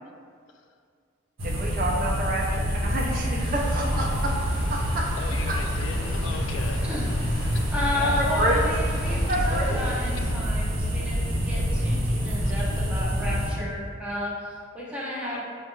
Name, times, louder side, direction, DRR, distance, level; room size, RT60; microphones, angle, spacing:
voice 1, 1.4-4.3 4.7-5.1 5.5-5.6 7.9-8.6 9.1-9.8, right 1 dB, 45° right, -2 dB, 0.6 m, -28 dB
sound 1, 1.4-13.5, equal, 85° right, 0.8 m, -26 dB
sound 2, 3.3-10.3, left 1 dB, 55° left, 0.7 m, -43 dB
voice 2, 5.2-6.8 12.5-12.8 15.3-15.4, left 5 dB, 75° left, 5 dB, 0.3 m, -38 dB
voice 3, 7.4-15.4, left 1 dB, 5° right, -6 dB, 0.7 m, -32 dB
5.4 x 2.1 x 3.1 m, 2.1 s
head